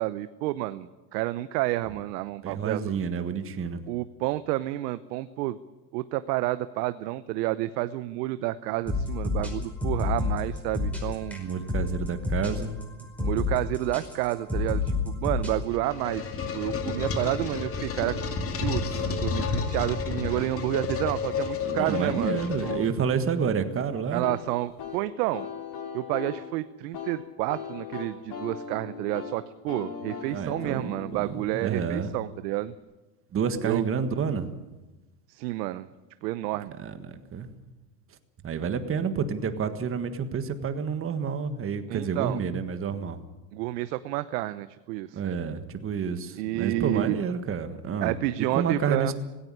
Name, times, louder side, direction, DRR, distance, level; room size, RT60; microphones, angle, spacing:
voice 1, 0.0-2.8 3.9-5.6 5.9-11.4 13.2-18.2 18.4-22.4 22.6-22.9 24.1-25.5 25.9-32.7 33.6-33.8 35.3-35.9 36.2-36.7 41.9-42.4 43.5-45.2 46.4-47.2 48.0-49.1, right 16 dB, 75° right, 13 dB, 0.9 m, -30 dB
voice 2, 2.4-3.8 11.3-12.9 18.9-19.0 21.6-24.3 30.3-32.2 33.3-34.5 36.8-37.5 38.4-43.2 45.1-49.1, right 6 dB, 25° right, 9 dB, 1.6 m, -29 dB
sound 1, 8.9-15.6, left 3 dB, 5° left, 5.1 m, -28 dB
sound 2, 15.5-23.2, left 5 dB, 25° left, 2.3 m, -31 dB
sound 3, 24.2-32.8, left 6 dB, 45° left, 5.6 m, -40 dB
17.0 x 15.5 x 9.8 m, 1.1 s
supercardioid pair, 125°, 49 cm